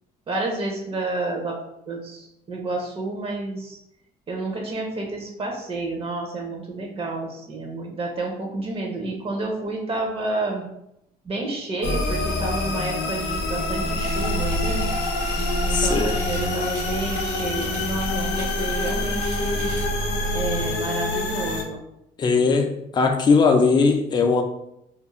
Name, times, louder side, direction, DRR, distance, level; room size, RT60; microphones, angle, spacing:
voice 1, 0.3-1.6 1.9-3.8 4.3-10.7 11.2-14.9 15.7-19.7 20.3-21.8 22.3-22.6, right 2 dB, 35° right, 0 dB, 0.6 m, -30 dB
sound 1, 11.8-21.6, left 1 dB, 80° left, 0.5 m, -26 dB
sound 2, 14.0-19.9, equal, 85° right, 0.9 m, -36 dB
voice 2, 15.7-16.2 22.2-24.4, left 4 dB, 25° left, 4 dB, 0.4 m, -19 dB
2.4 x 2.0 x 3.0 m, 0.79 s
cardioid pair, 110°, 17 cm